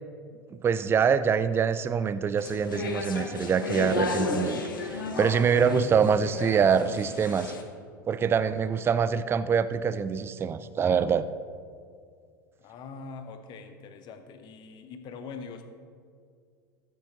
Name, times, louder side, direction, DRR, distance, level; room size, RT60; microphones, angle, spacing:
voice 1, 0.5-7.5 8.1-11.3, right 6 dB, 20° right, 14 dB, 0.4 m, -25 dB
sound 1, 2.4-7.6, left 3 dB, 75° left, 1.1 m, -33 dB
voice 2, 5.6-6.3 12.6-15.7, left 5 dB, 40° left, 8 dB, 1.0 m, -42 dB
14.5 x 8.3 x 3.0 m, 2.2 s
figure-of-eight pair, 80°, 11 cm